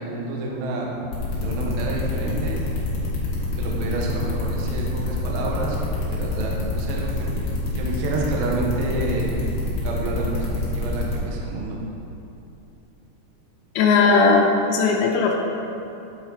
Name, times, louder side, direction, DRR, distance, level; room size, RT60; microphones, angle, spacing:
voice 1, 0.0-2.6 3.6-7.5 7.7-9.3 9.8-11.8, right 2 dB, 75° right, -2 dB, 2.4 m, -29 dB
sound 1, 1.1-11.1, left 2 dB, 65° left, 2.7 m, -26 dB
voice 2, 13.8-15.3, left 4 dB, 80° left, 0 dB, 2.8 m, -17 dB
9.9 x 4.7 x 4.1 m, 2.7 s
omnidirectional pair, 5.3 m